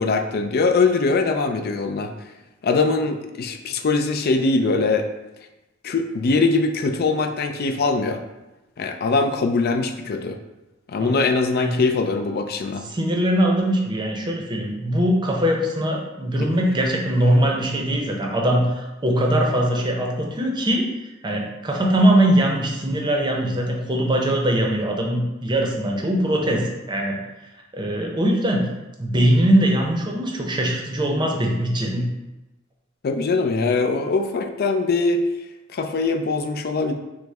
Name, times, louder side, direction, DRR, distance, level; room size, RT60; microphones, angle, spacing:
voice 1, 0.0-2.1 2.6-5.1 5.8-8.2 8.8-10.4 10.9-12.9 16.4-16.5 33.0-35.2 35.7-36.9, left 3 dB, 50° left, 6 dB, 0.4 m, -22 dB
voice 2, 11.0-11.3 11.5-11.8 12.9-20.9 21.2-27.2 27.7-28.7 29.0-32.0, right 1 dB, 25° right, 0 dB, 0.7 m, -21 dB
6.2 x 2.1 x 3.3 m, 1.0 s
head